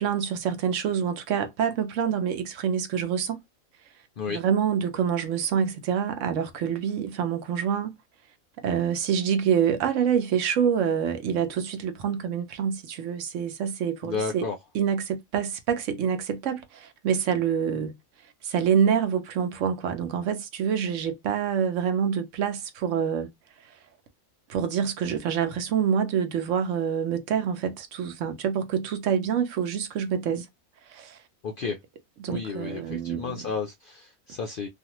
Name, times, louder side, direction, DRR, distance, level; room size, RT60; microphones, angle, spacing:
voice 1, 0.0-3.4 4.3-7.9 8.6-14.4 14.7-18.0 18.4-23.3 24.5-30.5 30.9-31.2 32.2-33.3, right 8 dB, 70° right, 0.9 m, -26 dB
voice 2, 14.0-14.6 31.4-31.8 32.3-34.7, left 5 dB, 70° left, 0.5 m, -32 dB
2.5 x 2.4 x 2.9 m
omnidirectional pair, 1.4 m